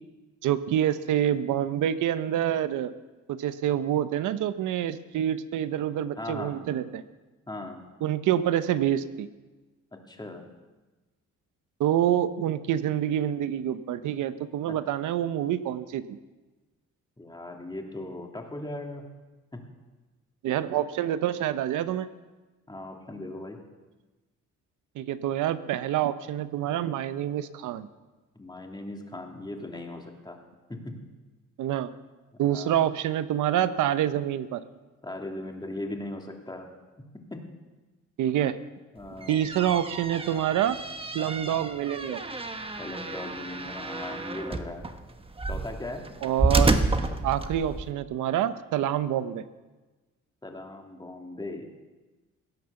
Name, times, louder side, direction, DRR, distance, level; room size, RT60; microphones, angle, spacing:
voice 1, 0.4-2.9 3.3-7.0 8.0-9.3 11.8-16.2 20.4-22.1 25.0-27.9 31.6-31.9 32.4-34.6 38.2-38.6 39.3-40.8 41.1-42.2 46.2-46.8 47.2-49.4, right 11 dB, 80° right, 13 dB, 0.8 m, -27 dB
voice 2, 6.2-6.6 7.5-7.8 10.1-10.4 14.7-14.8 17.2-19.0 19.5-19.6 22.7-23.6 28.3-30.4 30.7-30.9 32.5-32.8 35.0-36.7 37.3-37.4 38.9-39.5 42.8-44.9 45.5-46.0 50.4-51.7, left 2 dB, 15° left, 2 dB, 2.8 m, -38 dB
sound 1, 39.0-47.9, right 2 dB, 20° right, 1.2 m, -30 dB
17.5 x 9.5 x 7.0 m, 1.2 s
cardioid pair, 90°, 30 cm